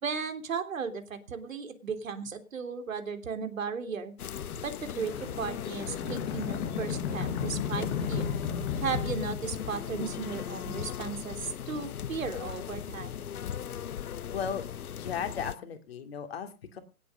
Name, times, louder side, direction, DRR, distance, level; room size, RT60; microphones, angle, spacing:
voice 1, 0.0-4.1 4.6-8.4 8.8-13.3, right 5 dB, 60° right, 8 dB, 3.4 m, -36 dB
sound 1, 4.2-15.5, left 9 dB, 70° left, 0.7 m, -38 dB
sound 2, 4.4-10.2, left 7 dB, 15° left, 1.1 m, -34 dB
voice 2, 14.3-16.8, left 7 dB, 40° left, 7 dB, 2.8 m, -36 dB
18.5 x 8.4 x 6.6 m, 0.33 s
hypercardioid pair, 150°, 46 cm